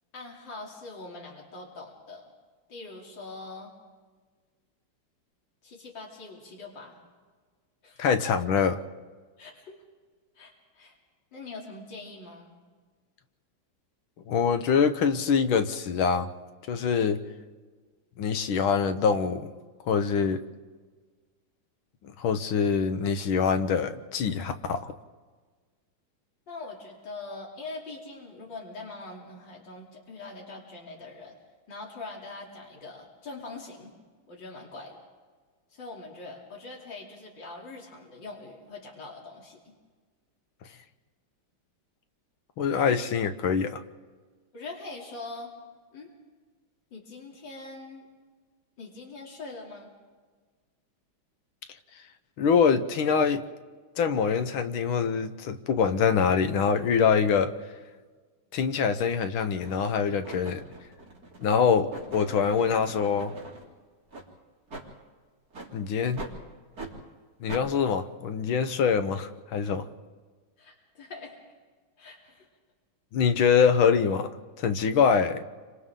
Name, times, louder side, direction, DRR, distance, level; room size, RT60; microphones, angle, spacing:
voice 1, 0.1-2.2 2.7-3.7 5.6-7.0 7.8-8.1 9.4-9.8 10.4-11.0 11.3-12.5 26.5-31.4 31.7-33.9 34.3-35.0 35.7-39.7 44.5-45.5 45.9-46.1 46.9-48.1 48.8-49.9 70.6-71.4 72.0-72.5, left 3 dB, 60° left, -2 dB, 3.7 m, -43 dB
voice 2, 8.0-8.8 14.3-16.3 16.7-17.2 18.2-19.5 19.9-20.4 22.2-24.9 42.6-43.8 52.4-53.4 54.0-57.5 58.5-60.6 61.4-63.3 65.7-66.2 67.4-69.9 73.1-74.3 74.6-75.4, left 6 dB, 75° left, 9 dB, 1.7 m, -24 dB
sound 1, 58.8-58.9 59.6-59.9 60.2-63.6 64.1-64.3 64.7-64.9 65.5-65.7 66.2-66.4 66.8-66.9 67.5-67.7, right 2 dB, 45° right, 3.4 m, -42 dB
29.5 x 25.5 x 3.8 m, 1.5 s
omnidirectional pair, 2.3 m